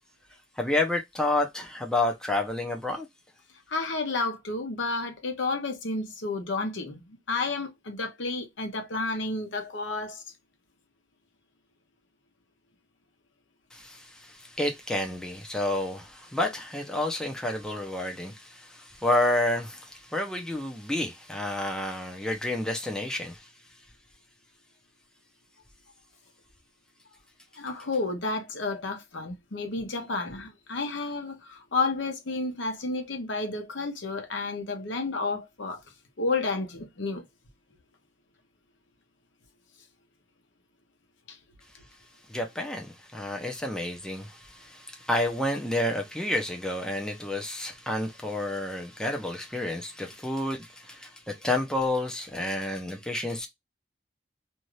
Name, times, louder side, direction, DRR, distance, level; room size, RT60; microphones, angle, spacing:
voice 1, 0.6-3.1 13.7-23.5 42.3-53.5, left 1 dB, 5° left, 0.6 m, -30 dB
voice 2, 3.7-10.2 27.6-35.8 36.2-37.3 41.3-41.4, left 3 dB, 80° left, 0.9 m, -31 dB
2.7 x 2.4 x 3.1 m
head